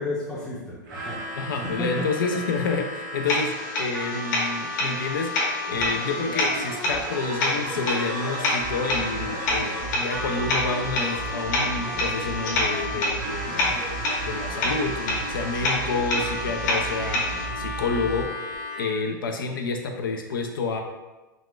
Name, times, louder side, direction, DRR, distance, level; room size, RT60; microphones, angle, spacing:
voice 1, 0.0-2.1, left 2 dB, ahead, -8 dB, 0.6 m, -32 dB
Harmonica, 0.8-19.1, left 1 dB, 85° right, 0.9 m, -34 dB
voice 2, 1.4-13.8 14.2-20.8, left 4 dB, 85° left, 3 dB, 0.4 m, -29 dB
sound 1, 3.3-17.5, left 2 dB, 60° left, 0.9 m, -29 dB
sound 2, 5.7-18.2 18.5-18.6, right 4 dB, 60° right, 0.6 m, -36 dB
4.0 x 2.1 x 2.3 m, 1.1 s
hypercardioid pair, 115°, 11 cm